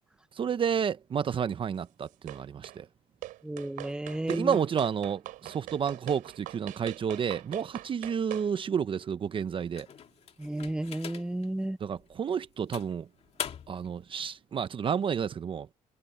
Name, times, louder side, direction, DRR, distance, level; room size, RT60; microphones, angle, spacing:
voice 1, 0.4-2.8 4.3-9.9 11.8-13.1 13.7-15.7, right 7 dB, 40° right, 0.9 m, -30 dB
sound 1, 2.3-2.8 3.2-8.5, right 16 dB, 80° right, 5.7 m, -43 dB
voice 2, 3.4-4.6 10.4-11.8, right 1 dB, 5° right, 1.0 m, -32 dB
sound 2, 9.7-11.5 12.0-12.1 12.7-13.9, left 8 dB, 50° left, 2.6 m, -41 dB
cardioid pair, 105°, 14 cm